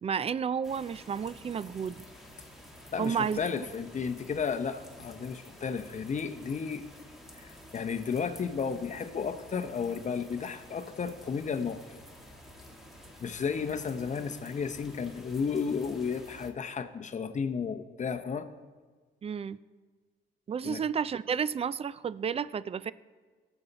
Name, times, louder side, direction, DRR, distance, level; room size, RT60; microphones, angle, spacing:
voice 1, 0.0-2.0 3.0-3.4 19.2-19.6 20.5-22.9, right 7 dB, 30° right, 18 dB, 0.4 m, -31 dB
sound 1, 0.6-16.5, equal, ahead, 1.8 m, -51 dB
voice 2, 2.9-6.8 7.3-11.8 13.2-18.5 20.6-20.8, left 6 dB, 40° left, 9 dB, 0.8 m, -33 dB
18.5 x 7.1 x 4.1 m, 1.5 s
cardioid pair, 90°, 20 cm